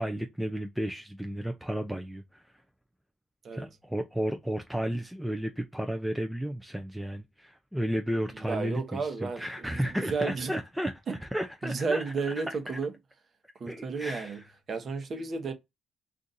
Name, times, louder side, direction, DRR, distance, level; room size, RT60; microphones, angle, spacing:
voice 1, 0.0-2.6 3.5-12.5 13.7-14.4, equal, 5° right, 0.5 m, -33 dB
voice 2, 8.3-9.4 9.7-10.5 11.6-12.9 13.6-14.4 14.7-15.5, right 4 dB, 50° right, 0.9 m, -32 dB
2.6 x 2.4 x 3.9 m
cardioid pair, 90°, 0 cm